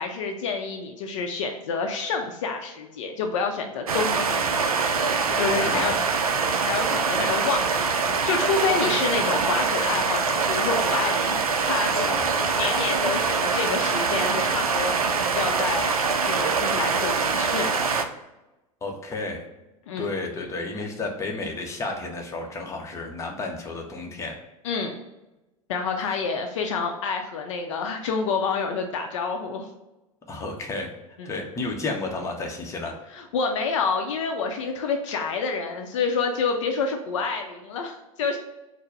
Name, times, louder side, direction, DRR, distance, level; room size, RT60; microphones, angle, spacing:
voice 1, 0.0-4.4 5.3-6.0 6.6-12.2 12.5-16.0 16.2-17.8 19.9-20.1 24.6-25.0 25.7-29.7 31.2-31.3 33.1-38.4, left 5 dB, 55° left, 4 dB, 0.5 m, -28 dB
sound 1, 3.9-18.0, right 5 dB, 75° right, 0.4 m, -24 dB
voice 2, 5.3-5.9 7.2-7.3 12.1-12.5 18.8-19.4 20.0-24.4 30.3-30.9 31.3-32.9, left 3 dB, 15° left, 1 dB, 0.7 m, -32 dB
4.4 x 2.0 x 4.5 m, 1.0 s
figure-of-eight pair, 85°, 19 cm